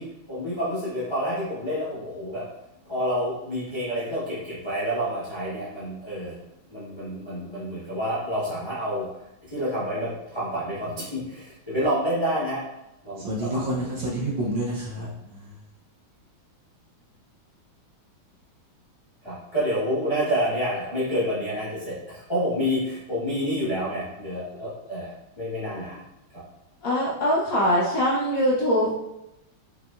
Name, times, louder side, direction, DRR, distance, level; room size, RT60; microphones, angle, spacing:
voice 1, 0.0-2.6 2.9-6.4 6.7-9.1 9.4-12.7 13.0-13.8 15.0-15.1 19.2-26.0 26.3-26.4, equal, 30° left, -9 dB, 0.5 m, -28 dB
voice 2, 13.2-15.5, right 1 dB, 70° right, -5 dB, 1.3 m, -29 dB
voice 3, 26.8-28.9, equal, 75° left, -5 dB, 0.8 m, -22 dB
5.6 x 2.9 x 2.3 m, 0.90 s
omnidirectional pair, 2.3 m